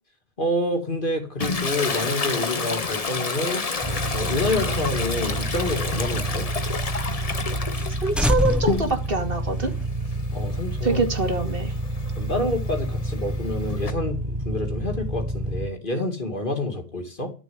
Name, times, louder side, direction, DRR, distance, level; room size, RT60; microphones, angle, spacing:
voice 1, 0.4-3.6 4.1-6.5 10.3-11.0 12.2-17.3, left 1 dB, 50° left, 4 dB, 2.7 m, -28 dB
Toilet flush, 1.4-9.2 9.6-13.9, left 4 dB, 35° left, 1.0 m, -30 dB
sound 1, 3.8-15.7, right 1 dB, 25° right, 1.3 m, -29 dB
sound 2, 3.9-6.7 7.0-7.1 7.4-7.5 7.8-7.9 8.2-9.9, right 1 dB, ahead, 0.7 m, -28 dB
voice 2, 8.0-9.7 10.8-11.7, right 3 dB, 60° right, 5 dB, 2.5 m, -25 dB
12.5 x 7.0 x 9.4 m, 0.37 s
omnidirectional pair, 1.1 m